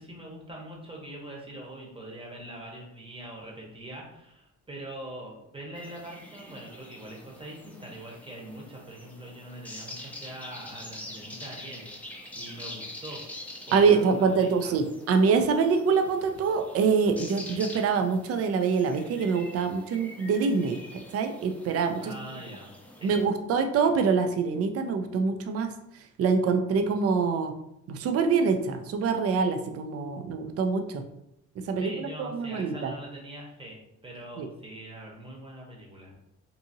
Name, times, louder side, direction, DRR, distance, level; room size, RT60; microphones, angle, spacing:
voice 1, 0.0-13.2 13.7-14.7 22.0-22.7 23.0-23.2 31.8-36.1, right 1 dB, 15° right, -2 dB, 0.8 m, -43 dB
sound 1, 5.7-23.3, left 1 dB, 5° left, 0.5 m, -45 dB
voice 2, 13.7-22.1 23.0-25.7 26.2-27.5 27.9-31.0 31.7-32.9 34.4-34.5, right 5 dB, 50° right, 6 dB, 0.4 m, -25 dB
2.7 x 2.6 x 2.6 m, 0.81 s
cardioid pair, 90°, 30 cm